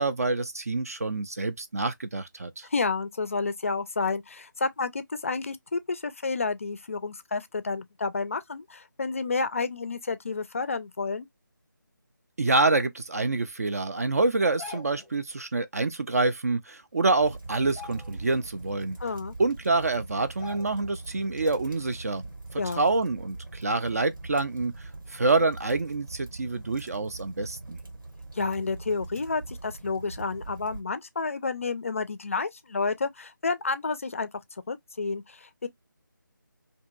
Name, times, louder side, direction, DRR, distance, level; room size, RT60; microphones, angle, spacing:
voice 1, 0.0-2.7 12.4-19.0 19.4-22.3 22.5-27.8, right 3 dB, 45° right, 0.4 m, -27 dB
voice 2, 2.6-11.3 19.0-19.3 22.6-22.8 28.3-34.3 34.7-35.7, left 4 dB, 40° left, 0.4 m, -30 dB
sound 1, 14.6-15.1 16.6-16.7 17.0-17.2 17.6-18.5 18.9-19.0 19.7-19.8 20.4-21.0 21.4-21.5, left 4 dB, 5° left, 0.7 m, -44 dB
sound 2, 17.2-30.8, right 2 dB, 80° right, 1.1 m, -42 dB
2.8 x 2.6 x 2.3 m
figure-of-eight pair, 165°, 11 cm